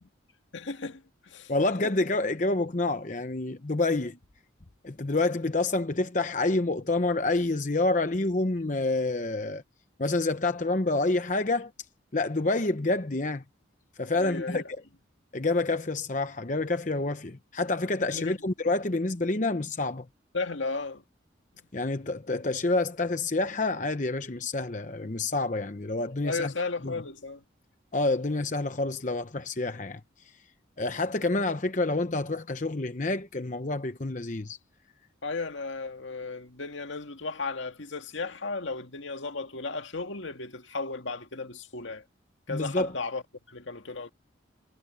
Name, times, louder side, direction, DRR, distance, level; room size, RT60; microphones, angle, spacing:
voice 1, 0.5-1.5 14.2-14.7 18.1-18.4 20.3-21.0 26.2-27.4 35.2-42.0 42.5-43.2 43.5-44.1, left 3 dB, 75° left, 2.0 m, -35 dB
voice 2, 1.5-4.2 4.8-9.6 10.0-11.7 12.1-13.4 14.0-14.6 15.3-20.1 21.7-26.5 26.8-26.9 27.9-30.0 30.8-34.6 42.5-42.9, left 2 dB, 40° left, 0.9 m, -28 dB
head